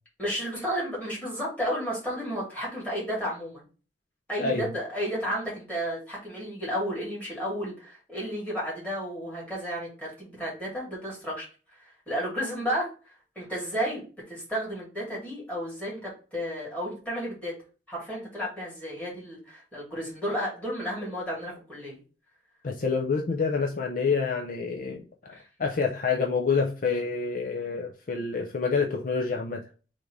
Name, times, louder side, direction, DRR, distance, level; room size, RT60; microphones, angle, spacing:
voice 1, 0.2-3.7 4.3-11.5 12.1-14.0 14.3-17.5 17.9-22.0 25.3-25.4, equal, 10° left, 2.0 m, -32 dB
voice 2, 4.4-4.7 22.6-29.7, left 5 dB, 45° left, 0.4 m, -28 dB
3.6 x 2.6 x 4.5 m
head